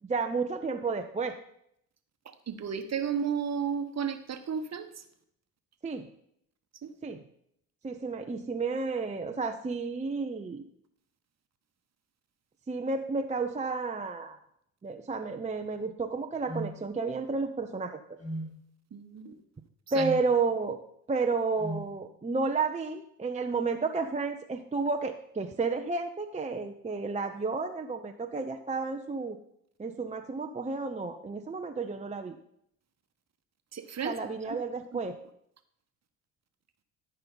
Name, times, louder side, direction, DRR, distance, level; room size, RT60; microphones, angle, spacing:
voice 1, 0.0-1.4 5.8-6.1 7.0-7.2 7.8-10.6 12.7-14.4 14.8-18.0 19.9-20.8 21.1-29.4 29.8-32.4 34.0-35.2, right 4 dB, 15° right, 5 dB, 0.7 m, -31 dB
voice 2, 2.2-5.0 6.8-6.9 18.9-19.4 19.9-20.1 33.7-34.2 34.4-34.6, right 7 dB, 35° right, 9 dB, 1.1 m, -33 dB
sound 1, 16.5-16.7 18.2-18.5 19.9-20.2 21.6-21.9, right 1 dB, 35° left, 3.3 m, -35 dB
13.0 x 5.5 x 4.0 m, 0.73 s
hypercardioid pair, 50°, 44 cm